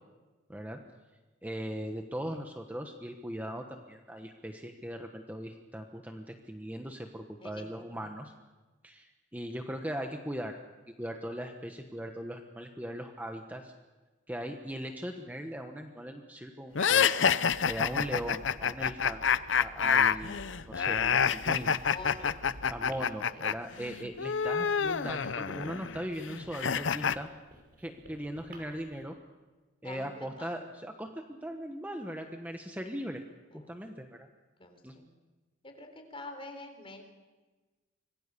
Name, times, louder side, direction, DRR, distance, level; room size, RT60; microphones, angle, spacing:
voice 1, 1.4-8.3 8.8-10.6 11.0-13.7 14.3-17.1 17.6-21.8 22.7-27.3 27.8-29.1 29.8-33.2 33.5-34.3 34.8-35.0, equal, 10° right, 4 dB, 1.2 m, -39 dB
sound 1, 16.8-23.5 23.8-27.2, left 7 dB, 80° left, 0.7 m, -28 dB
Train, 17.5-22.8, right 1 dB, 75° right, 1.2 m, -51 dB
Writing, 20.4-29.0, right 1 dB, 50° right, 5.5 m, -57 dB
voice 2, 21.8-22.4 23.3-23.6 29.8-30.7 33.5-33.7 34.6-35.1 35.6-37.0, left 2 dB, 30° left, 5 dB, 3.8 m, -46 dB
26.0 x 21.0 x 6.9 m, 1.3 s
head